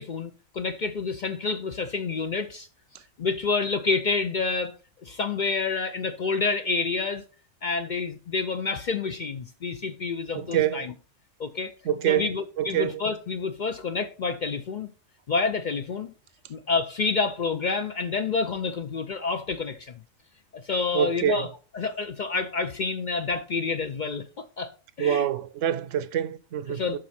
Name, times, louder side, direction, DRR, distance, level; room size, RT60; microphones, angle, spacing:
voice 1, 0.0-2.7 3.2-4.8 5.0-7.2 7.6-10.9 11.4-11.7 12.1-14.9 15.3-16.1 16.5-20.0 20.5-21.5 21.7-24.7 25.0-25.3 26.7-27.0, left 4 dB, 55° left, 0.5 m, -28 dB
voice 2, 10.3-10.9 11.9-12.3 12.6-13.0 20.9-21.5 25.0-27.0, right 10 dB, 75° right, 0.9 m, -26 dB
7.6 x 5.5 x 4.2 m
omnidirectional pair, 1.3 m